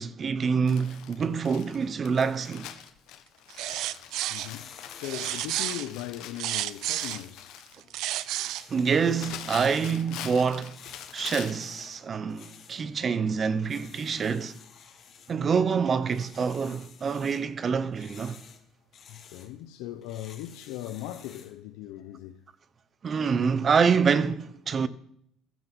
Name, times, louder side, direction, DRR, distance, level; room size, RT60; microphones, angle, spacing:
voice 1, 0.0-2.7 8.7-10.8 11.1-14.6 15.3-18.4 23.0-24.9, right 6 dB, 35° right, 1.0 m, -26 dB
Crumpling crinkling, 0.7-11.7 12.5-12.6 13.0-13.1, left 11 dB, 75° left, 1.5 m, -44 dB
sound 1, 3.5-4.5 5.0-7.2 7.7-8.6, right 14 dB, 70° right, 0.6 m, -31 dB
sound 2, 4.0-21.6, left 7 dB, 45° left, 3.0 m, -53 dB
voice 2, 4.3-7.9 10.0-10.1 19.1-22.4, left 13 dB, 90° left, 0.9 m, -39 dB
15.0 x 11.0 x 6.3 m
cardioid pair, 115°, 0 cm